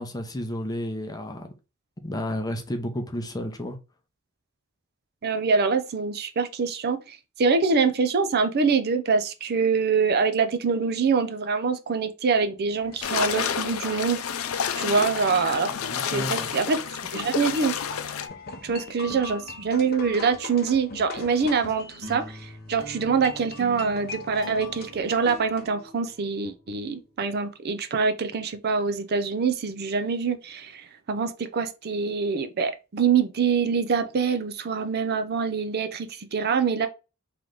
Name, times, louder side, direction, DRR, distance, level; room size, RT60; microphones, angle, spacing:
voice 1, 0.0-1.5 2.0-3.8 15.7-16.5, left 1 dB, 20° left, 0.7 m, -32 dB
voice 2, 5.2-14.5 14.7-15.7 16.1-16.8 17.1-17.7 18.6-36.9, right 5 dB, 50° right, 0.5 m, -25 dB
sound 1, 12.7-25.7, left 4 dB, 50° left, 0.8 m, -41 dB
sound 2, 13.0-18.3, left 8 dB, 85° left, 0.5 m, -30 dB
sound 3, 21.2-26.8, equal, 70° right, 1.5 m, -43 dB
3.3 x 3.0 x 3.8 m
head